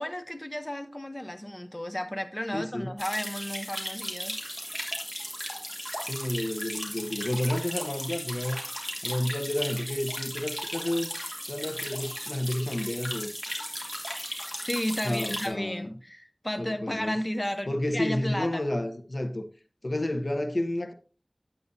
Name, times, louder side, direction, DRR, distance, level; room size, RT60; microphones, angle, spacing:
voice 1, 0.0-4.4 14.6-18.6, left 1 dB, 25° left, 0.7 m, -33 dB
voice 2, 2.5-2.9 6.0-8.6 9.0-11.1 11.5-13.3 15.0-15.9 16.6-17.2 17.7-19.4 19.8-20.9, left 1 dB, 65° left, 0.9 m, -30 dB
sound 1, 3.0-15.5, equal, 5° left, 2.6 m, -36 dB
9.9 x 8.4 x 2.7 m
wide cardioid pair, 45°, 0 cm